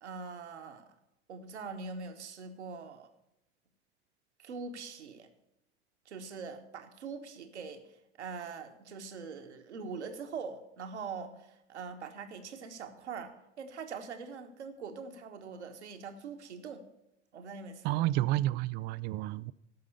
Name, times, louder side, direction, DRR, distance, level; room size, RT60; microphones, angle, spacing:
voice 1, 0.0-0.9 1.3-3.1 4.4-5.3 6.0-7.8 8.2-16.8 17.3-18.0, right 5 dB, 75° right, 1.4 m, -43 dB
voice 2, 17.8-19.5, right 15 dB, 30° right, 0.4 m, -30 dB
13.5 x 6.0 x 6.8 m
figure-of-eight pair, 85°, 35 cm